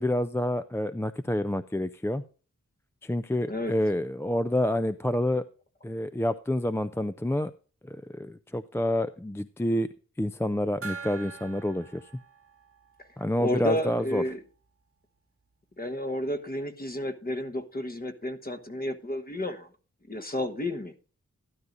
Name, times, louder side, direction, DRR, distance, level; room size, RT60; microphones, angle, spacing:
voice 1, 0.0-2.2 3.0-5.4 5.8-7.5 7.9-9.9 10.2-12.1 13.2-14.2, left 1 dB, 10° left, 11 dB, 0.4 m, -28 dB
Gong, 10.8-14.1, right 5 dB, 50° right, 1.0 m, -44 dB
voice 2, 13.4-14.4 15.8-19.7 20.1-20.9, left 1 dB, 30° left, 7 dB, 1.1 m, -31 dB
12.5 x 12.0 x 2.5 m, 0.38 s
wide cardioid pair, 95°, 30 cm